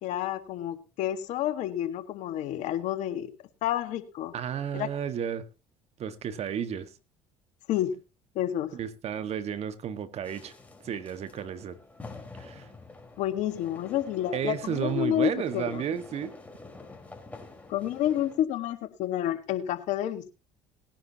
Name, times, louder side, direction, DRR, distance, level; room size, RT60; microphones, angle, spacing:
voice 1, 0.0-3.3 3.6-4.3 4.7-4.9 7.7-7.9 8.4-8.8 13.2-15.8 17.7-20.3, left 11 dB, 70° left, 1.7 m, -29 dB
voice 2, 4.3-5.5 6.0-6.9 8.7-10.5 10.8-11.8 12.4-12.7 14.3-16.3, right 8 dB, 55° right, 1.7 m, -32 dB
sound 1, 10.2-18.4, left 3 dB, 10° left, 4.7 m, -47 dB
19.5 x 10.5 x 2.9 m
hypercardioid pair, 65°, 13 cm